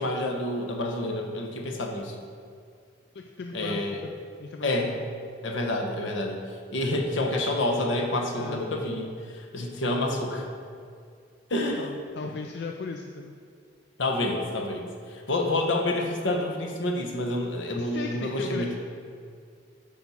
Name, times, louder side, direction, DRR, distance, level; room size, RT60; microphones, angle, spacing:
voice 1, 0.0-2.1 3.5-4.0 4.6-5.0 5.4-6.4 6.7-9.1 9.3-10.5 11.5-11.8 14.0-18.8, left 1 dB, 80° left, 2 dB, 1.0 m, -28 dB
voice 2, 3.1-4.1 4.4-4.9 8.3-8.6 11.8-13.4 17.7-18.8, left 4 dB, 60° left, 3 dB, 0.4 m, -37 dB
8.5 x 5.8 x 4.2 m, 2.3 s
head